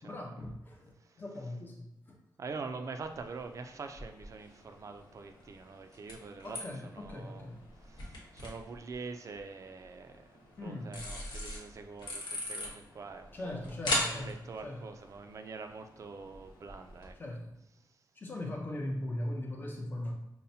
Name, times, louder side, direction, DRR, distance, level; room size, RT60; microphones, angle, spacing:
voice 1, 0.0-2.2 6.4-7.6 10.6-11.1 13.3-14.8 17.2-17.6 18.2-20.1, left 1 dB, 25° left, 0 dB, 0.6 m, -40 dB
voice 2, 2.4-7.5 7.8-10.3 10.6-13.6 14.0-17.2, right 4 dB, 45° right, 6 dB, 0.3 m, -45 dB
sound 1, 3.0-17.1, left 1 dB, 75° left, 1.0 m, -42 dB
5.5 x 2.1 x 2.7 m, 0.86 s
wide cardioid pair, 170°, 7 cm